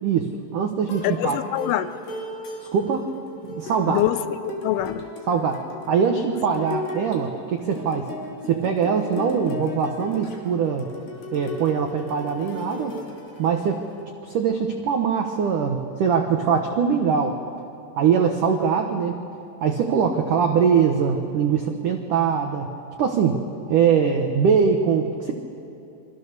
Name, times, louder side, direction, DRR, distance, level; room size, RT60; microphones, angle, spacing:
voice 1, 0.0-1.4 2.7-3.1 3.4-4.0 5.3-8.1 8.5-10.9 11.3-13.0 13.4-13.8 14.2-17.4 18.0-19.2 19.6-22.7 23.0-23.4 23.7-25.3, right 6 dB, 80° right, 4 dB, 1.8 m, -22 dB
sound 1, 0.9-14.0, left 2 dB, 50° left, 3.9 m, -36 dB
voice 2, 1.0-1.9 3.9-5.0, left 13 dB, 85° left, 11 dB, 3.2 m, -25 dB
28.5 x 24.5 x 6.7 m, 2.9 s
omnidirectional pair, 5.7 m